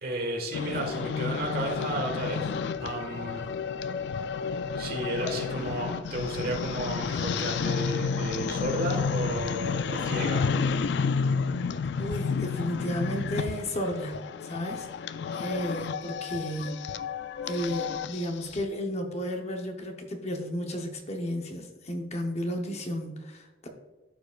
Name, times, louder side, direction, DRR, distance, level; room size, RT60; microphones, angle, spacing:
voice 1, 0.0-3.4 4.5-10.4, right 1 dB, 55° right, 1 dB, 1.6 m, -33 dB
sound 1, 0.5-18.6, left 5 dB, 65° left, 0.3 m, -31 dB
voice 2, 12.0-14.9 15.3-16.8 17.4-23.7, equal, 35° left, 3 dB, 0.8 m, -33 dB
13.5 x 4.8 x 2.4 m, 1.2 s
head